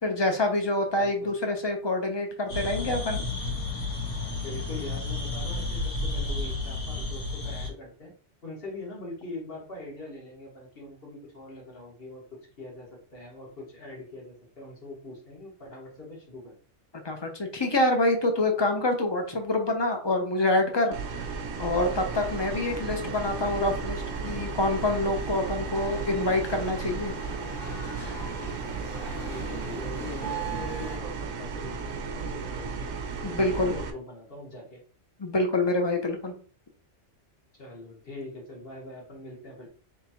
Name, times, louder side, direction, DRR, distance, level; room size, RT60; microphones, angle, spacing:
voice 1, 0.0-3.2 17.0-21.2 21.6-27.1 33.2-33.7 35.2-36.3, left 2 dB, 25° left, 4 dB, 0.6 m, -26 dB
voice 2, 1.0-1.3 4.4-8.1 8.4-16.5 29.3-32.7 33.2-34.8 37.6-39.7, left 2 dB, 55° left, -3 dB, 1.8 m, -42 dB
sound 1, 2.5-7.7, left 3 dB, 80° left, 1.8 m, -31 dB
sound 2, 20.9-33.9, right 5 dB, 70° right, 0.9 m, -35 dB
sound 3, 21.8-31.0, right 3 dB, ahead, 1.0 m, -40 dB
3.7 x 3.6 x 2.9 m, 0.41 s
omnidirectional pair, 1.2 m